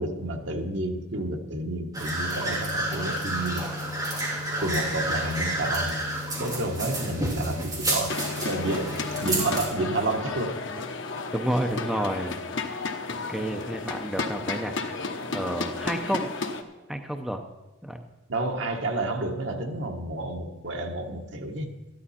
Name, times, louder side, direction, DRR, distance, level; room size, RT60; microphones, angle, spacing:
voice 1, 0.0-3.6 4.6-6.0 6.4-8.2 8.4-10.9 18.3-21.7, right 2 dB, 65° right, 3 dB, 1.4 m, -30 dB
sound 1, 1.9-9.6, right 1 dB, 20° right, 3.1 m, -30 dB
sound 2, 8.1-16.6, left 3 dB, 70° left, 1.1 m, -33 dB
voice 2, 11.3-12.4 12.7-12.8 13.1-14.7 15.3-16.3 16.9-17.4 17.8-18.0, right 1 dB, ahead, 4 dB, 0.6 m, -30 dB
13.5 x 11.5 x 4.3 m, 1.1 s
head